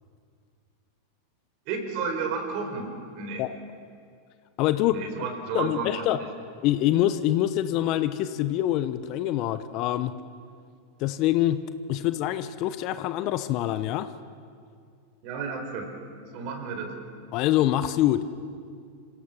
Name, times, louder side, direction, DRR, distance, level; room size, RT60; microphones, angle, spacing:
voice 1, 1.7-3.5 4.9-6.3 15.2-15.9 16.3-17.0, right 5 dB, 50° right, 4 dB, 4.2 m, -32 dB
voice 2, 4.6-5.0 5.5-6.2 6.6-10.1 11.0-14.1 17.3-18.2, left 13 dB, 45° left, 12 dB, 0.8 m, -25 dB
27.0 x 16.5 x 6.1 m, 2.2 s
hypercardioid pair, 95°, 0 cm